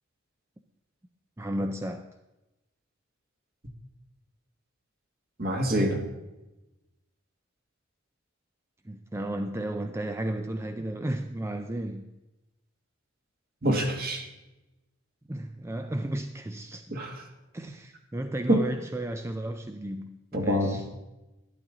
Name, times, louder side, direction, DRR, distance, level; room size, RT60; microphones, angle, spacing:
voice 1, 1.4-2.1 8.8-12.1 15.3-17.0 17.5-20.8, right 1 dB, 15° right, 0.4 m, -33 dB
voice 2, 5.4-6.0 13.6-14.2 16.9-17.2 18.5-18.6 20.3-20.9, right 1 dB, 50° right, 1.8 m, -26 dB
12.0 x 11.5 x 3.8 m
head